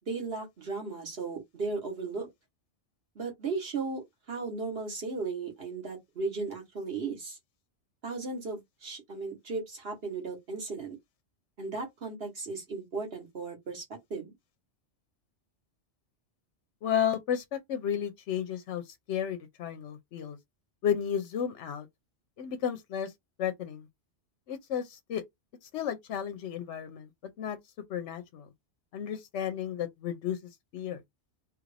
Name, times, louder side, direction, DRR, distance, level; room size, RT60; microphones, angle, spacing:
voice 1, 0.0-2.3 3.1-7.4 8.0-11.0 11.6-13.8 14.1-14.3, right 4 dB, 60° right, 1.5 m, -36 dB
voice 2, 16.8-20.4 20.8-21.9 22.4-23.1 23.4-23.9 24.5-25.2 25.7-27.1 27.4-27.6 27.9-28.5 28.9-30.4 30.7-31.0, left 9 dB, 80° left, 0.9 m, -32 dB
3.0 x 2.5 x 3.2 m
omnidirectional pair, 1.2 m